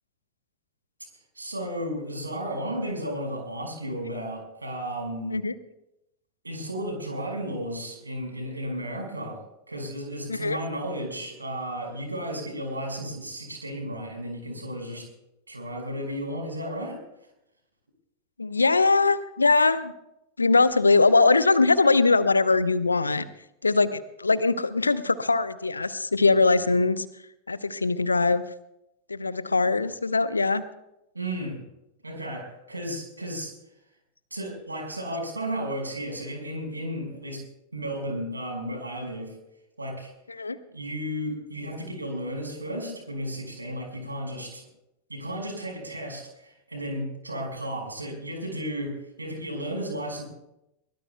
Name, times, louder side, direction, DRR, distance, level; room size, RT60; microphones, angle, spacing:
voice 1, 1.4-5.4 6.4-15.1 15.5-17.0 31.1-31.6 32.0-33.5 34.3-37.4 37.7-39.3 39.8-40.1 40.7-44.6 45.1-50.2, equal, 80° right, 2 dB, 5.2 m, -33 dB
voice 2, 18.4-19.9 20.4-23.2 23.6-27.1 27.5-28.4 29.1-30.6 40.3-40.6, left 3 dB, 80° left, 15 dB, 0.8 m, -21 dB
22.5 x 21.0 x 2.3 m, 0.86 s
figure-of-eight pair, 90°, 0 cm